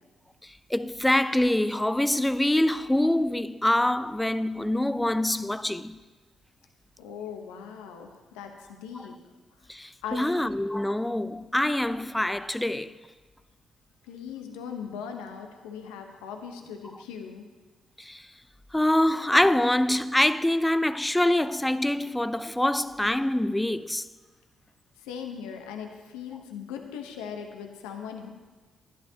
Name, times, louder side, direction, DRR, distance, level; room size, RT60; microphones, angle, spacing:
voice 1, 0.7-6.0 9.7-12.9 18.0-18.2 18.7-24.1, left 1 dB, 10° left, 0.4 m, -25 dB
voice 2, 7.0-9.2 10.0-10.5 14.1-17.5 25.0-28.3, left 7 dB, 85° left, 0.8 m, -39 dB
11.0 x 11.0 x 2.8 m
hypercardioid pair, 50°, 0 cm